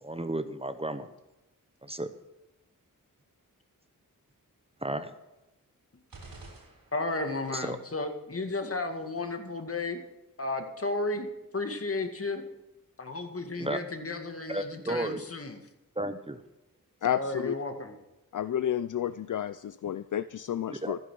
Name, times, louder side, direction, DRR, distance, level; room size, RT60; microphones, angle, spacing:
voice 1, 0.0-1.1 1.8-2.1 4.8-5.1 7.5-7.8 13.6-13.8 14.5-15.2 16.0-16.4 20.7-21.0, right 1 dB, 15° right, 11 dB, 0.9 m, -33 dB
sound 1, 6.1-7.4, right 2 dB, 80° right, 4.7 m, -49 dB
voice 2, 6.9-10.0 10.4-11.3 11.5-12.4 13.0-15.6 17.0-18.0, left 2 dB, 40° left, 6 dB, 2.0 m, -33 dB
voice 3, 17.0-17.5 18.3-21.0, left 10 dB, 65° left, 15 dB, 0.5 m, -31 dB
14.5 x 10.5 x 6.3 m, 0.98 s
wide cardioid pair, 85°, 34 cm